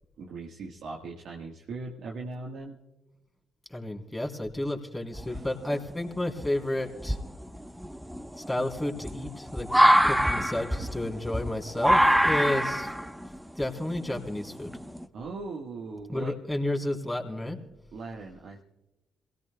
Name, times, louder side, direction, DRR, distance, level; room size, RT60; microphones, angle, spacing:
voice 1, 0.2-2.8 5.3-5.5 15.1-16.3 17.9-18.6, right 3 dB, 65° right, -2 dB, 1.5 m, -39 dB
voice 2, 3.7-7.2 8.4-9.7 10.0-12.9 13.6-14.7 16.1-17.6, left 1 dB, 10° left, 1 dB, 3.6 m, -31 dB
sound 1, 5.1-5.8 6.4-6.5 7.0-15.0, equal, 5° right, 1.0 m, -25 dB
27.5 x 17.5 x 2.3 m, 1.0 s
hypercardioid pair, 50°, 0 cm